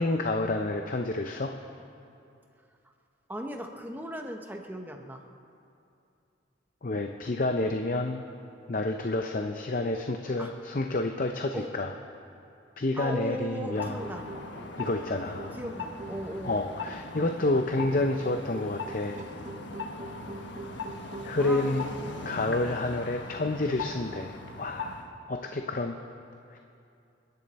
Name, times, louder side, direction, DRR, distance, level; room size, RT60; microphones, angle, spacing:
voice 1, 0.0-1.5 6.8-8.2 8.7-11.9 12.8-14.0 14.8-15.5 16.4-19.3 21.2-21.9 22.2-26.0 26.5-26.6, left 2 dB, 45° left, 5 dB, 0.6 m, -29 dB
voice 2, 3.3-5.2 10.4-10.5 11.5-11.7 12.9-14.2 15.5-16.7 21.4-22.6, right 1 dB, 10° right, 3 dB, 1.0 m, -38 dB
sound 1, 13.6-21.9 22.3-22.4 23.0-23.1, right 2 dB, 40° right, 1.0 m, -45 dB
sound 2, 13.7-25.1, left 3 dB, 65° left, 1.2 m, -40 dB
29.0 x 10.5 x 4.2 m, 2.6 s
head